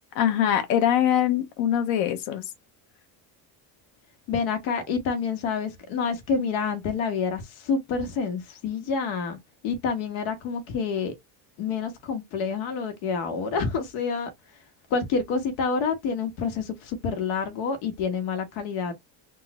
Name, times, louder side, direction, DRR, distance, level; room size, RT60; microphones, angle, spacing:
voice 1, 0.2-2.4, left 10 dB, 70° left, 1.2 m, -23 dB
voice 2, 4.3-9.4 9.6-11.1 11.6-14.3 14.9-18.9, left 5 dB, 90° left, 1.5 m, -28 dB
3.7 x 2.4 x 3.0 m
cardioid pair, 160°, 47 cm